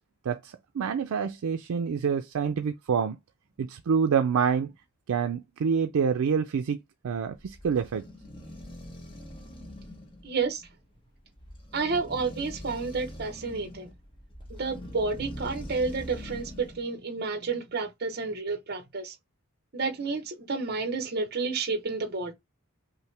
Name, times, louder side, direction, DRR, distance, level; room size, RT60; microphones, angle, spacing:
voice 1, 0.3-3.2 3.6-4.7 5.1-6.8 7.0-8.0, right 6 dB, 80° right, 0.4 m, -27 dB
sound 1, 7.1-16.8, equal, 25° left, 0.9 m, -43 dB
voice 2, 10.2-10.7 11.7-13.9 14.5-19.1 19.7-22.3, right 4 dB, 50° right, 0.8 m, -30 dB
5.6 x 2.1 x 3.2 m
head